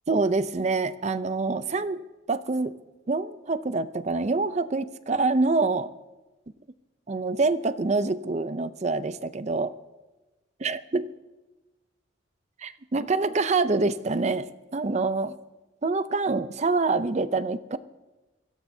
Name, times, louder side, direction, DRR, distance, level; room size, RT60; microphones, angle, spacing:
voice 1, 0.1-2.7 3.1-5.9 7.1-9.7 10.6-11.1 12.6-15.3 15.8-17.8, right 3 dB, 35° right, 13 dB, 0.5 m, -26 dB
23.0 x 16.5 x 2.7 m, 1.1 s
head